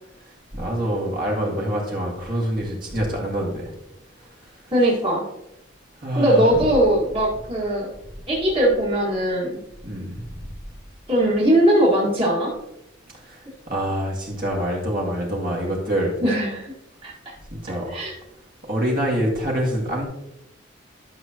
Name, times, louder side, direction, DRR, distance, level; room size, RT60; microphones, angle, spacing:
voice 1, 0.5-3.7 6.0-6.7 9.8-10.3 13.2-16.2 17.5-17.9 18.7-20.1, equal, 45° right, -2 dB, 1.9 m, -25 dB
voice 2, 4.7-5.3 6.2-7.9 8.3-9.6 11.1-12.5 16.2-16.7 17.0-17.1 17.9-18.1, right 1 dB, 25° right, -5 dB, 1.7 m, -20 dB
11.5 x 6.0 x 2.9 m, 0.86 s
head